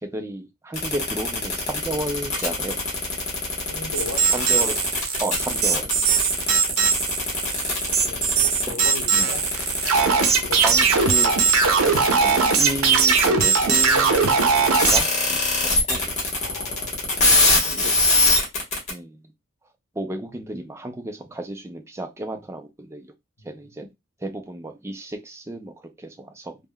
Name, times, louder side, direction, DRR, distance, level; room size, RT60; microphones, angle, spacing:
voice 1, 0.1-2.8 4.3-4.8 5.2-5.9 8.7-8.8 9.1-9.3 10.6-11.3 12.1-14.2 14.7-16.1 17.8-17.9 18.9-19.2 20.0-23.1 23.4-23.9 24.2-26.6, right 1 dB, 15° right, 0.4 m, -32 dB
sound 1, 0.7-18.9, left 2 dB, 35° left, 1.0 m, -23 dB
voice 2, 3.7-4.3 8.0-9.4 10.4-10.6 16.3-16.9 17.2-18.1 23.4-23.5, left 3 dB, 80° left, 0.7 m, -36 dB
sound 2, 3.9-15.0, right 5 dB, 85° right, 0.6 m, -20 dB
3.4 x 2.1 x 2.2 m
head